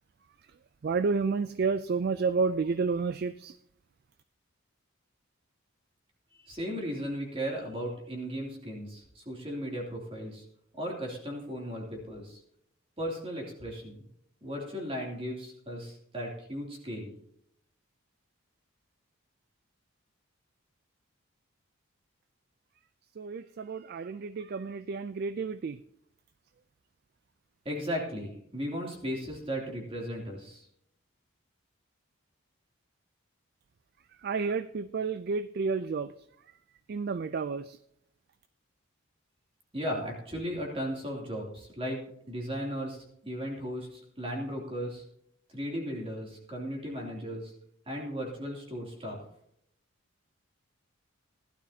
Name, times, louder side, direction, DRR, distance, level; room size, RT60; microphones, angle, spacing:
voice 1, 0.8-3.5 23.2-25.8 34.2-36.1 36.9-37.8, right 4 dB, 45° right, 14 dB, 0.3 m, -30 dB
voice 2, 6.4-10.4 10.7-12.4 13.0-14.0 14.4-17.1 27.6-30.7 39.7-42.0 42.3-45.0 45.5-47.5 47.9-49.2, equal, 25° right, -1 dB, 2.8 m, -36 dB
16.0 x 11.5 x 2.8 m, 0.72 s
head